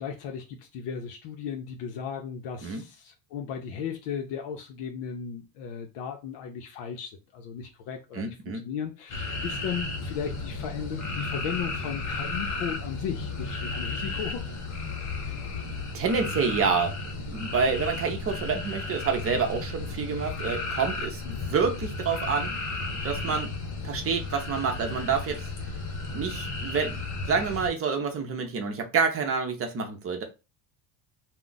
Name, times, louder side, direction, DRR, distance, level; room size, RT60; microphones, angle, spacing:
voice 1, 0.0-8.3 8.6-14.8 21.2-21.4, left 7 dB, 75° left, 0.6 m, -36 dB
voice 2, 8.1-8.7 15.9-16.9 17.3-21.2 21.5-22.5 23.0-23.5 23.8-25.5 26.1-30.2, right 5 dB, 35° right, 0.6 m, -28 dB
sound 1, 9.1-27.7, left 3 dB, 40° left, 0.9 m, -34 dB
2.4 x 2.1 x 3.8 m
cardioid pair, 125°, 43 cm